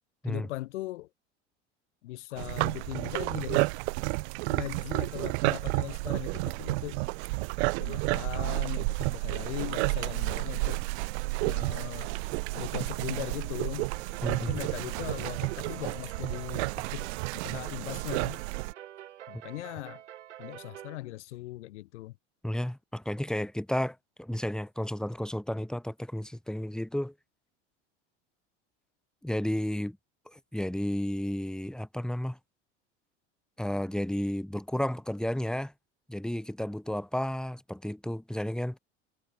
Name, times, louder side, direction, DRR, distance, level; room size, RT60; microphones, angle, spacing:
voice 1, 0.2-1.1 2.0-3.7 4.5-7.0 7.8-10.8 11.4-12.2 12.5-13.9 14.4-18.4 19.3-20.0 20.4-22.2, left 17 dB, 75° left, 4.7 m, -39 dB
sound 1, 2.4-18.7, right 26 dB, 65° right, 1.6 m, -31 dB
sound 2, 13.9-21.0, right 12 dB, 80° right, 5.7 m, -47 dB
voice 2, 22.4-27.1 29.2-30.0 30.3-32.4 33.6-35.7 36.1-38.8, left 1 dB, ahead, 2.0 m, -32 dB
hypercardioid pair, 85°, 35 cm